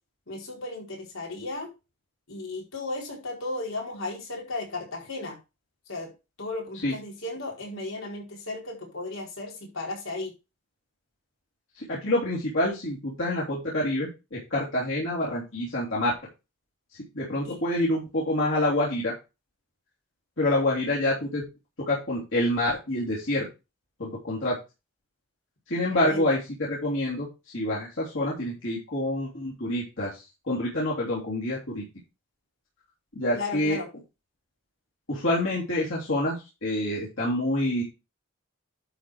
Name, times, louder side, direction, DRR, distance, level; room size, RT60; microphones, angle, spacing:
voice 1, 0.3-1.7 2.3-5.4 5.9-6.1 6.4-10.3 17.4-17.6 25.9-26.3 33.3-33.9, left 2 dB, 80° left, -1 dB, 4.6 m, -35 dB
voice 2, 11.7-16.1 17.1-19.2 20.4-21.4 21.8-23.5 24.0-24.6 25.7-27.3 27.5-31.8 33.1-33.8 35.1-37.8, left 1 dB, 65° left, -6 dB, 3.3 m, -27 dB
11.5 x 4.6 x 4.9 m, 0.27 s
head